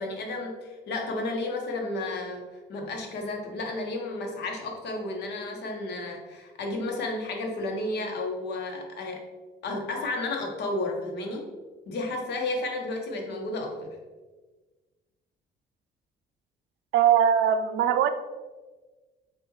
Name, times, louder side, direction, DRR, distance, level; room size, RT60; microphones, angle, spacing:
voice 1, 0.0-2.4 2.7-9.2 9.6-11.5 11.9-13.9, left 2 dB, 65° left, 2 dB, 1.0 m, -32 dB
voice 2, 16.9-18.1, right 9 dB, 90° right, 9 dB, 0.4 m, -21 dB
7.0 x 2.4 x 3.1 m, 1.3 s
cardioid pair, 150°, 19 cm